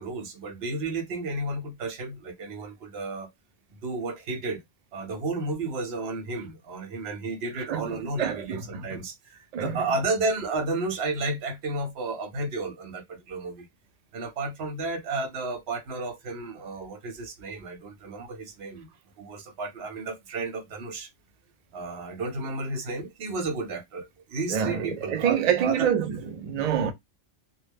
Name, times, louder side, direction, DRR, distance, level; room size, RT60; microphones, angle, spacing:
voice 1, 0.0-3.3 3.8-4.6 4.9-13.7 14.1-18.9 19.2-21.1 21.7-25.9, right 3 dB, 65° right, 0.8 m, -32 dB
voice 2, 8.2-8.9 9.5-9.8 24.5-26.9, right 8 dB, 80° right, 0.3 m, -26 dB
2.3 x 2.0 x 3.3 m
omnidirectional pair, 1.3 m